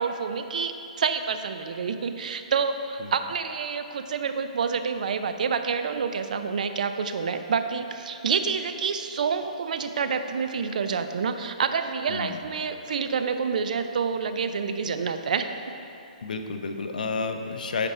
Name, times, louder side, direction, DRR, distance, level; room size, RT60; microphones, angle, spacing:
voice 1, 0.0-15.5, right 6 dB, 65° right, 8 dB, 0.5 m, -28 dB
voice 2, 12.1-12.4 16.2-17.9, left 4 dB, 80° left, 6 dB, 0.7 m, -30 dB
8.2 x 5.2 x 4.3 m, 2.8 s
hypercardioid pair, 150°, 4 cm